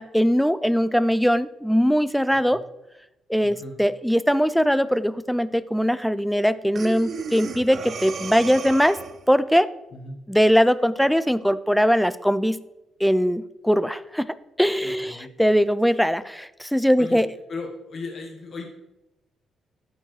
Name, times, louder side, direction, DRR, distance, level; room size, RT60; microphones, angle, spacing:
voice 1, 0.0-2.6 3.3-9.0 9.3-9.7 10.3-12.6 13.0-17.3, equal, ahead, 15 dB, 0.4 m, -21 dB
voice 2, 3.4-3.8 9.9-10.2 14.8-15.3 17.0-17.2 17.5-18.7, left 3 dB, 55° left, 1 dB, 1.2 m, -36 dB
Breathing, 6.8-9.3, right 5 dB, 50° right, 0.6 m, -34 dB
12.5 x 4.3 x 3.2 m, 0.93 s
cardioid pair, 90°, 0 cm